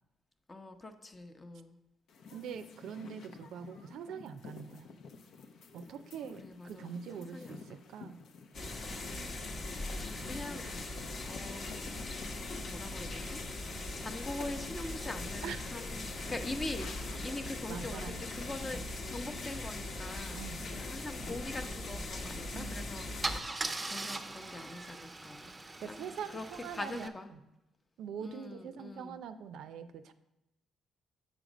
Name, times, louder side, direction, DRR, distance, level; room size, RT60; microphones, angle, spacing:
voice 1, 0.5-1.8 6.4-7.8 9.9-10.7 11.2-11.7 12.6-13.4 13.7-23.5 23.9-26.5 26.7-27.3 28.2-29.2, left 2 dB, 25° left, 8 dB, 0.7 m, -43 dB
sound 1, 2.1-19.5, left 4 dB, 75° left, 0.6 m, -53 dB
voice 2, 2.3-4.9 5.7-8.2 15.4-15.7 17.7-18.2 20.3-20.7 22.5-22.8 25.8-27.4 28.0-30.1, right 7 dB, 80° right, 10 dB, 0.4 m, -43 dB
sound 2, 8.5-23.4, left 2 dB, 55° left, 1.1 m, -40 dB
Car / Engine starting / Idling, 22.5-22.7 23.2-27.1, right 2 dB, 20° right, 0.6 m, -40 dB
7.2 x 5.0 x 5.0 m, 0.91 s
cardioid pair, 90°, 0 cm